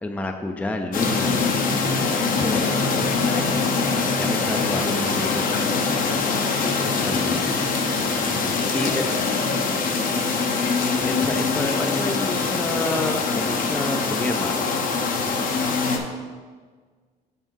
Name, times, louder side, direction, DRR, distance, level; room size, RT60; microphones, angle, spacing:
voice 1, 0.0-1.4 2.3-3.4 4.2-5.7 6.8-7.5 8.7-9.0 11.1-14.6, left 2 dB, 10° left, 5 dB, 0.4 m, -29 dB
sound 1, 0.9-16.0, left 4 dB, 55° left, 0.8 m, -23 dB
voice 2, 3.1-3.6 4.7-4.9 7.4-8.3 8.6-9.7 10.5-10.7, left 3 dB, 70° left, -1 dB, 1.6 m, -35 dB
5.6 x 5.3 x 4.5 m, 1.5 s
cardioid pair, 110°, 17 cm